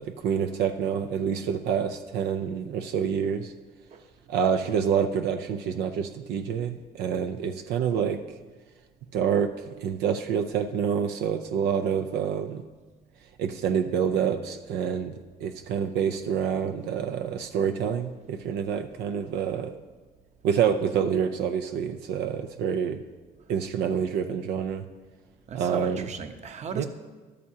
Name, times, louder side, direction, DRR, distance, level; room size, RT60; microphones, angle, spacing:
voice 1, 0.0-3.5 4.3-8.2 9.1-12.6 13.4-15.1 15.4-19.7 20.4-23.0 23.5-24.8 25.5-26.1 26.7-26.9, right 7 dB, 80° right, 7 dB, 0.6 m, -27 dB
voice 2, 25.5-26.9, right 6 dB, 40° right, 8 dB, 0.9 m, -37 dB
13.5 x 12.5 x 2.8 m, 1.4 s
cardioid pair, 110°, 17 cm